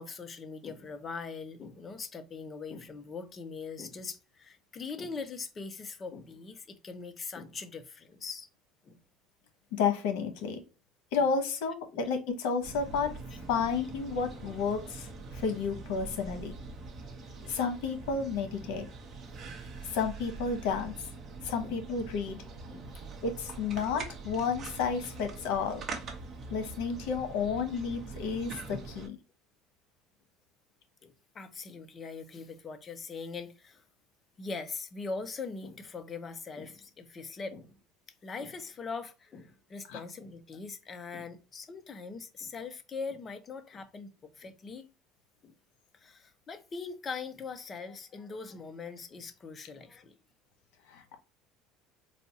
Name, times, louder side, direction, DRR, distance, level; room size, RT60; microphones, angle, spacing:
voice 1, 0.0-8.5 8.8-9.0 11.1-11.2 11.9-12.0 13.6-13.7 15.5-15.6 17.4-17.6 21.6-21.8 22.7-23.0 27.7-27.8 31.0-33.8 34.4-37.7 38.2-44.9 45.4-45.5 45.9-50.1, left 4 dB, 25° left, 0.5 m, -41 dB
voice 2, 9.7-10.6 11.1-13.1 13.5-15.1 15.3-16.6 17.5-18.9 19.8-20.9 21.4-22.4 23.2-25.8 26.5-29.2 39.9-40.0 50.9-51.2, left 5 dB, 85° left, 1.0 m, -31 dB
sound 1, 12.6-29.1, right 3 dB, 35° right, 0.8 m, -43 dB
4.1 x 2.3 x 2.7 m
cardioid pair, 150°, 0 cm